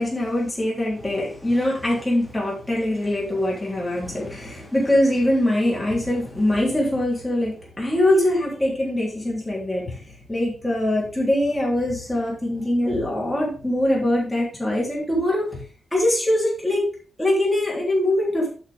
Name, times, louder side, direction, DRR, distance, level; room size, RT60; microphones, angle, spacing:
voice 1, 0.0-10.0 10.3-15.6 15.9-16.8 17.2-18.5, left 1 dB, 5° left, -5 dB, 3.4 m, -23 dB
8.7 x 5.6 x 3.6 m, 0.41 s
wide cardioid pair, 165°, 0 cm